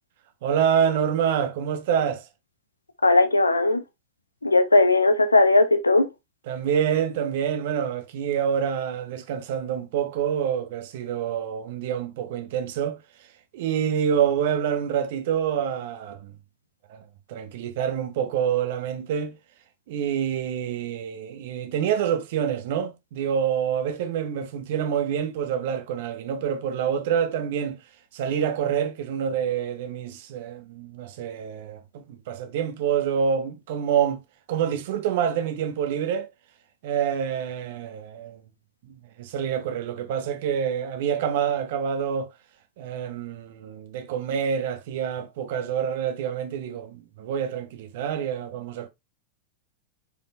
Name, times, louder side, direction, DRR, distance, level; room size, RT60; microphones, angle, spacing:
voice 1, 0.4-2.3 6.5-13.0 13.5-16.3 16.9-19.3 19.9-27.8 28.1-34.2 34.5-36.3 36.8-38.4 38.8-42.3 42.8-48.9, right 8 dB, 55° right, 1.3 m, -27 dB
voice 2, 3.0-3.8 4.4-6.1, left 2 dB, 80° left, 1.0 m, -18 dB
6.6 x 5.4 x 3.1 m
figure-of-eight pair, 90°, 0 cm